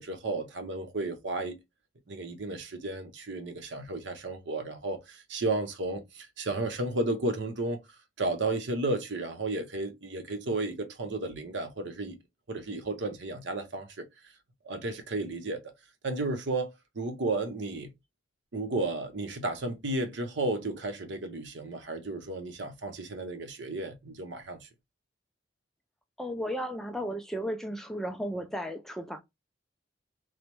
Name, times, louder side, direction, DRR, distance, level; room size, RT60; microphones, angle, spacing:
voice 1, 0.0-1.6 2.1-7.8 8.2-12.2 12.5-14.0 14.6-15.6 16.0-17.9 18.5-24.7, right 2 dB, 70° right, 0.8 m, -33 dB
voice 2, 26.2-29.2, equal, ahead, 0.3 m, -34 dB
3.2 x 2.0 x 2.9 m
head